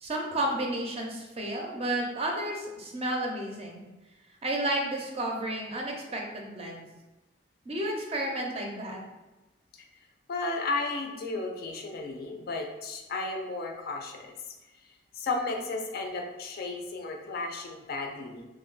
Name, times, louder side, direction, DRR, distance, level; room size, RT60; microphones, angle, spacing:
voice 1, 0.0-3.8 4.4-6.8 7.7-9.0, right 1 dB, 35° right, 0 dB, 0.5 m, -32 dB
voice 2, 10.3-14.3 15.2-18.4, left 3 dB, 55° left, 2 dB, 0.4 m, -34 dB
2.9 x 2.1 x 3.8 m, 1.1 s
head